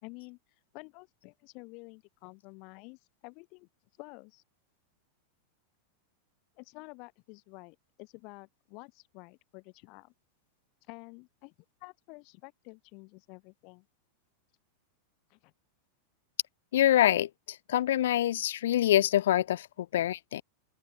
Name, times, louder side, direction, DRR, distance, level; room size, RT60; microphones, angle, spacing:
voice 1, 0.0-0.4 0.7-3.7 4.0-4.4 6.5-10.1 10.9-11.5 11.8-13.9 15.3-15.5, left 31 dB, 45° left, 4.5 m, -50 dB
voice 2, 16.7-17.3 17.7-19.7 19.9-20.4, left 12 dB, 60° left, 0.5 m, -25 dB
open air
figure-of-eight pair, 90°, 0 cm